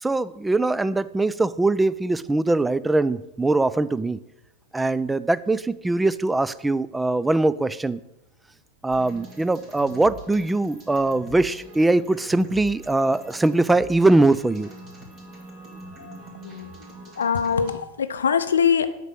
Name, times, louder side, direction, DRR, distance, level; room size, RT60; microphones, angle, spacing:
voice 1, 0.0-4.2 4.7-8.0 8.8-14.7, right 2 dB, 10° right, 17 dB, 0.3 m, -22 dB
sound 1, 8.9-17.8, right 1 dB, 30° right, 2.4 m, -43 dB
voice 2, 16.4-16.7 17.2-18.9, left 7 dB, 70° left, 11 dB, 0.5 m, -23 dB
8.0 x 5.3 x 6.0 m, 0.91 s
figure-of-eight pair, 90°, 0 cm